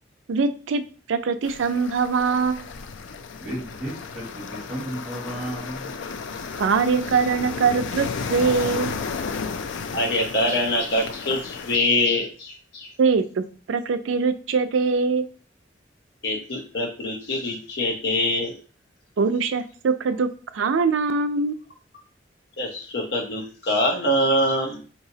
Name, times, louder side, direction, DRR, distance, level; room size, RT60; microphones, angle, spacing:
voice 1, 0.3-0.8 1.1-2.7 6.6-9.0 13.0-15.3 19.2-21.6, right 5 dB, 90° right, 9 dB, 0.4 m, -23 dB
sound 1, 1.4-11.8, left 5 dB, 85° left, 0.4 m, -33 dB
voice 2, 3.4-5.9, right 1 dB, ahead, -7 dB, 1.6 m, -34 dB
voice 3, 9.9-12.9 16.2-18.6 22.6-24.8, left 1 dB, 60° left, 0 dB, 0.7 m, -24 dB
4.7 x 2.9 x 2.7 m, 0.39 s
head